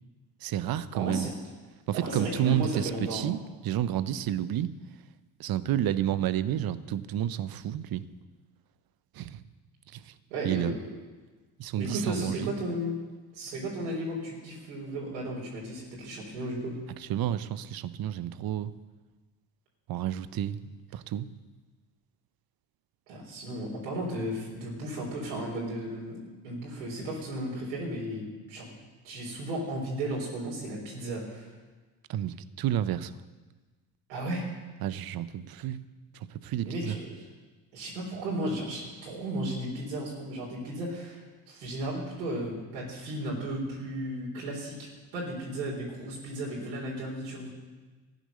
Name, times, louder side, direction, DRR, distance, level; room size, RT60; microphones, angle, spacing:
voice 1, 0.4-1.3 1.9-4.7 5.4-8.0 9.1-9.4 9.9-10.1 10.4-10.7 11.6-12.5 17.0-18.7 19.9-21.3 32.1-33.1 34.8-35.8 36.1-36.9, right 11 dB, 45° right, 14 dB, 0.9 m, -30 dB
voice 2, 0.9-1.3 1.9-3.3 10.3-10.9 11.8-13.0 13.3-16.8 23.1-28.8 29.0-31.5 34.1-34.4 36.6-37.2 37.7-41.2 41.5-44.8 45.1-47.5, right 1 dB, 80° right, -4 dB, 3.8 m, -34 dB
15.0 x 9.2 x 6.7 m, 1.3 s
hypercardioid pair, 55°, 50 cm